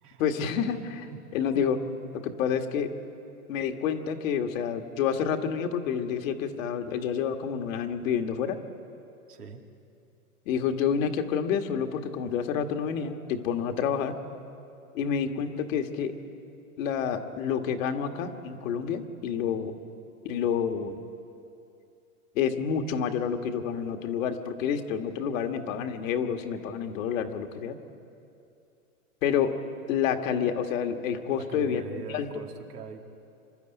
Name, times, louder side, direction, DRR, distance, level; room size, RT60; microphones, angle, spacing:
voice 1, 0.2-1.1 1.3-1.8 2.1-2.9 3.5-8.6 10.5-14.1 14.9-16.1 16.8-19.8 20.2-21.0 22.4-27.8 29.2-29.5 29.9-31.8 32.1-32.3, left 7 dB, 60° left, 5 dB, 1.8 m, -28 dB
voice 2, 9.3-9.6 31.3-33.0, right 5 dB, 85° right, 2 dB, 2.3 m, -42 dB
26.0 x 12.0 x 9.1 m, 2.6 s
hypercardioid pair, 115°, 45 cm